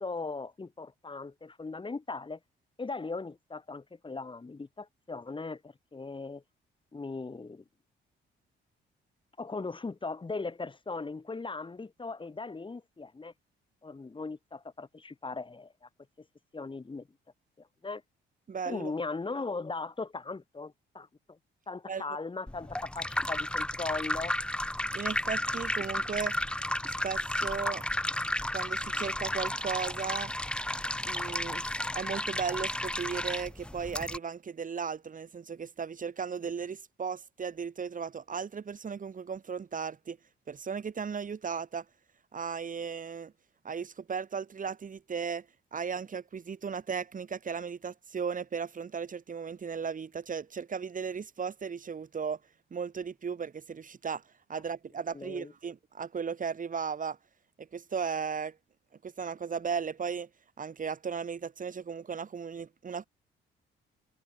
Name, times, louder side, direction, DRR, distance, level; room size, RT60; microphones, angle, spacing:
voice 1, 0.0-2.4 2.8-6.4 6.9-7.6 9.4-13.3 13.8-15.9 16.5-17.1 17.6-18.0 18.7-21.4 21.7-24.3 28.9-29.1 55.1-55.5, left 3 dB, 25° left, 4.3 m, -38 dB
voice 2, 18.5-18.9 21.9-22.0 24.9-26.4 27.0-27.9 28.5-30.3 31.0-31.6 31.9-40.2 40.5-41.8 42.3-43.3 43.6-45.5 45.7-52.4 52.7-54.2 54.5-57.2 57.6-58.6 59.0-60.3 60.6-63.1, right 6 dB, 40° right, 3.8 m, -36 dB
Peeing into a tiolet, 22.5-34.2, left 1 dB, 5° left, 0.6 m, -33 dB
cardioid pair, 90°, 20 cm